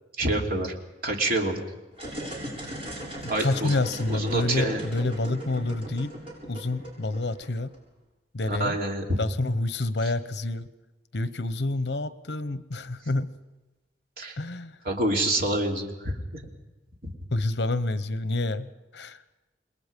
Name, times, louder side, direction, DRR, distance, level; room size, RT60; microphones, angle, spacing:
voice 1, 0.2-0.7 1.0-1.6 3.3-3.7 4.1-4.8 8.5-9.2 14.2-14.4 14.8-16.4 17.0-17.1, right 1 dB, 55° right, 1 dB, 3.1 m, -27 dB
sound 1, 1.9-7.8, right 1 dB, 35° right, 7.6 m, -38 dB
voice 2, 3.2-6.1 6.5-7.7 8.3-8.8 9.2-10.7 11.1-13.3 14.4-14.8 17.3-19.2, left 2 dB, 70° left, 12 dB, 1.0 m, -28 dB
28.5 x 21.0 x 5.3 m, 1.1 s
head